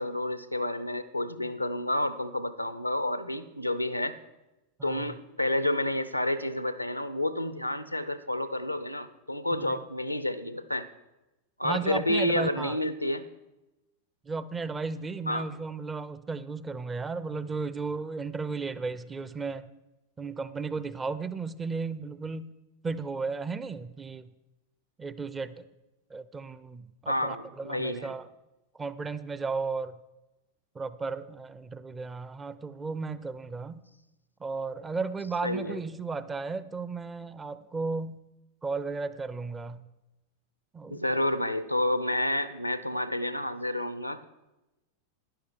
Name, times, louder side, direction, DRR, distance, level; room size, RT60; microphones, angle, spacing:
voice 1, 0.0-4.2 4.8-10.8 11.6-13.2 15.3-15.5 27.1-28.1 35.4-35.8 40.9-44.2, left 1 dB, 90° left, 14 dB, 0.6 m, -30 dB
voice 2, 4.8-5.2 9.6-9.7 11.6-12.8 14.2-19.7 20.2-22.5 22.8-24.3 25.0-25.6 26.1-28.3 28.8-30.0 30.7-33.8 34.4-38.2 38.6-39.8 40.7-41.0, right 4 dB, 15° right, 15 dB, 0.5 m, -34 dB
11.5 x 10.5 x 4.6 m, 1.0 s
figure-of-eight pair, 90°, 0 cm